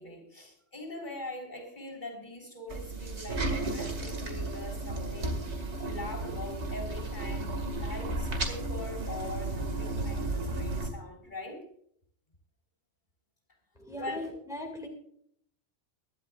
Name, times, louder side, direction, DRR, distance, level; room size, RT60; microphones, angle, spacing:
voice 1, 0.0-11.7 14.0-14.2, left 1 dB, 45° left, 1 dB, 4.1 m, -42 dB
sound 1, 2.7-10.9, right 2 dB, 75° right, 2.4 m, -33 dB
voice 2, 13.8-14.9, left 1 dB, 5° right, 0 dB, 2.2 m, -39 dB
23.5 x 12.0 x 2.4 m, 0.67 s
omnidirectional pair, 1.2 m